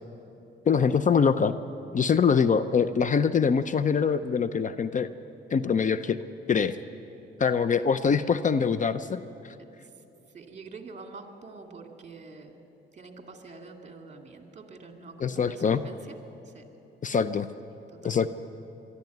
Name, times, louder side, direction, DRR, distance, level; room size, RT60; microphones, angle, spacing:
voice 1, 0.7-1.5 1.9-5.1 5.5-6.2 6.5-6.8 7.4-9.5 15.2-15.9 17.0-17.5 18.0-18.3, left 6 dB, 40° left, 13 dB, 0.6 m, -24 dB
voice 2, 10.3-12.5 12.9-16.1 16.5-16.6 17.9-18.3, right 4 dB, 35° right, 4 dB, 2.5 m, -46 dB
23.0 x 13.0 x 9.3 m, 2.9 s
cardioid pair, 90°, 20 cm